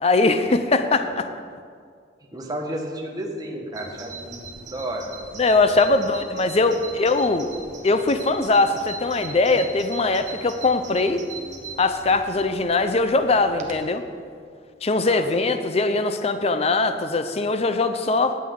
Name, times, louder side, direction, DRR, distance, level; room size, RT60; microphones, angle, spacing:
voice 1, 0.0-1.3 5.4-7.5 7.8-11.2 11.8-14.0 14.8-18.4, left 3 dB, 35° left, 9 dB, 0.5 m, -21 dB
voice 2, 2.3-5.1 5.7-5.8 15.0-15.2, right 1 dB, 20° right, 0 dB, 1.2 m, -32 dB
Bird vocalization bird call bird song, 3.7-13.9, right 3 dB, 45° right, 1.1 m, -40 dB
17.5 x 7.5 x 3.7 m, 2.1 s
head